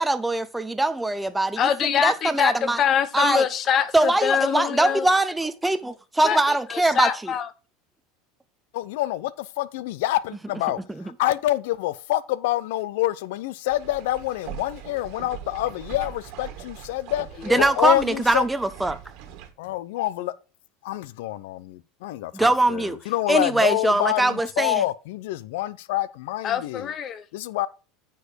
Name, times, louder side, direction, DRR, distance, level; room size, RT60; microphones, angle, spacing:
voice 1, 0.0-2.8 3.1-3.4 3.9-7.3 17.5-19.0 22.3-23.0 23.3-24.8, right 2 dB, 5° right, 0.5 m, -22 dB
voice 2, 1.6-2.5 2.8-5.1 6.2-7.5 17.5-17.8 26.4-27.2, left 8 dB, 35° left, 0.9 m, -24 dB
voice 3, 8.7-17.3 17.6-18.5 19.6-20.3 20.8-26.9 27.3-27.7, left 15 dB, 80° left, 0.5 m, -27 dB
sound 1, 13.7-19.5, right 10 dB, 60° right, 1.6 m, -41 dB
9.0 x 4.6 x 5.0 m
supercardioid pair, 125°, 0 cm